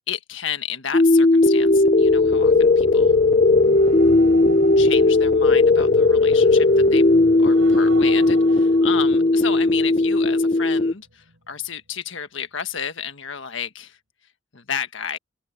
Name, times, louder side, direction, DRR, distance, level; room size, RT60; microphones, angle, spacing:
voice 1, 0.1-3.1 4.8-7.1 7.4-14.0 14.5-15.2, left 8 dB, 75° left, 1.5 m, -32 dB
sound 1, 0.9-10.9, left 2 dB, 40° left, 0.6 m, -16 dB
sound 2, 1.6-11.0 11.3-11.6, right 1 dB, 80° right, 6.3 m, -37 dB
open air
head